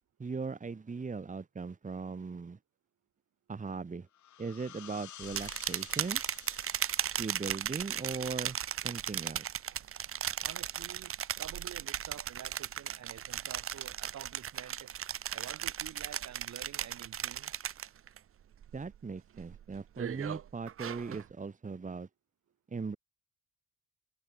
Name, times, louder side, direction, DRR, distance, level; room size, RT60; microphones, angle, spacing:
voice 1, 0.2-2.6 3.5-4.1 4.4-6.2 7.2-8.6 8.8-9.5 18.7-22.1 22.7-23.0, right 4 dB, 25° right, 1.6 m, -39 dB
sound 1, 4.1-9.5, left 12 dB, 75° left, 5.0 m, -53 dB
sound 2, 5.2-18.2 18.5-19.0 19.4-21.3, right 10 dB, 45° right, 0.8 m, -37 dB
voice 2, 10.4-14.9 15.3-17.5, right 10 dB, 60° right, 3.9 m, -49 dB
cardioid pair, 90°, 30 cm